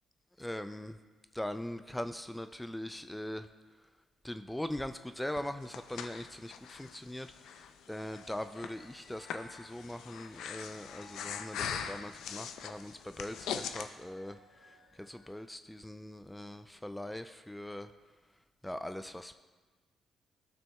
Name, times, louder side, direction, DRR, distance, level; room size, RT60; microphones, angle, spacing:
voice 1, 0.4-1.0 1.3-3.5 4.2-14.4 15.0-17.9 18.6-19.3, left 1 dB, 10° left, 9 dB, 0.4 m, -41 dB
Breathing, 5.4-13.9, left 8 dB, 75° left, 0.4 m, -42 dB
sound 1, 7.9-15.4, left 2 dB, 50° left, 1.2 m, -60 dB
13.5 x 6.1 x 2.3 m, 1.3 s
supercardioid pair, 55°, 0 cm